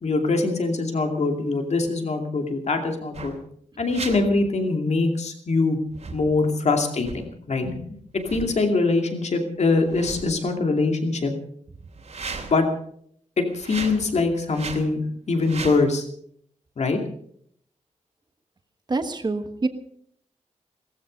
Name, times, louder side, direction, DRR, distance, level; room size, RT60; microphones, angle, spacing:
voice 1, 0.0-3.3 3.8-5.8 6.1-7.7 8.3-11.3 12.5-12.7 13.4-15.0 15.3-16.0 16.8-17.0, left 3 dB, 60° left, 4 dB, 2.6 m, -23 dB
sound 1, 3.1-3.4 3.9-4.2 5.9-6.3 7.0-7.2 8.2-8.6 9.7-10.5 11.9-12.6 13.5-14.0 14.5-14.9 15.4-15.8, right 4 dB, 60° right, 2.9 m, -36 dB
voice 2, 18.9-19.7, right 3 dB, 35° right, 8 dB, 1.4 m, -26 dB
18.0 x 15.0 x 5.3 m, 0.64 s
wide cardioid pair, 175°, 13 cm